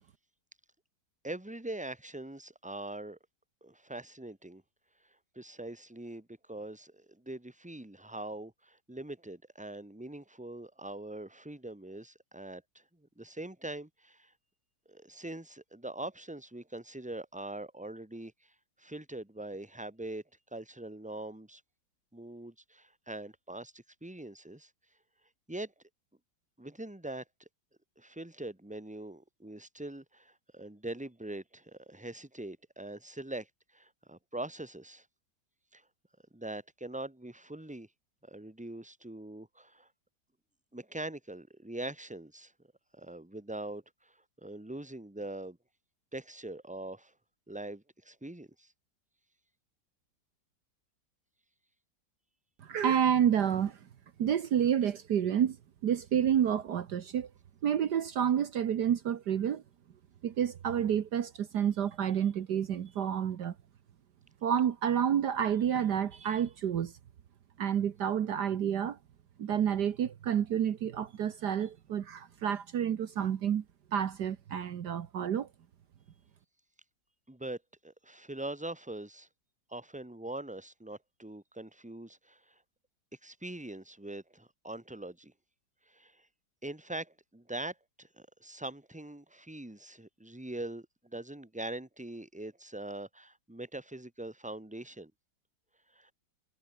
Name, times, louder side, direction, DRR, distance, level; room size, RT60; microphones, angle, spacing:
voice 1, 1.2-3.2 3.6-4.6 5.3-12.6 13.2-14.3 14.9-18.5 18.8-20.2 20.5-21.6 22.1-24.7 25.5-25.7 26.6-27.2 28.0-33.5 33.7-35.1 35.7-35.8 36.3-37.9 38.2-39.9 40.7-42.5 42.9-45.6 46.1-47.1 47.5-48.7 77.3-77.6 77.8-79.3 79.7-82.5 83.2-85.3 85.9-86.3 86.6-95.1 95.9-96.1, right 2 dB, 5° right, 2.5 m, -42 dB
voice 2, 52.6-53.8 54.2-55.6 55.8-57.3 57.6-59.6 60.2-63.5 64.4-66.9 67.6-69.0 69.4-73.6 73.9-75.5, right 9 dB, 65° right, 1.7 m, -29 dB
omnidirectional pair, 2.0 m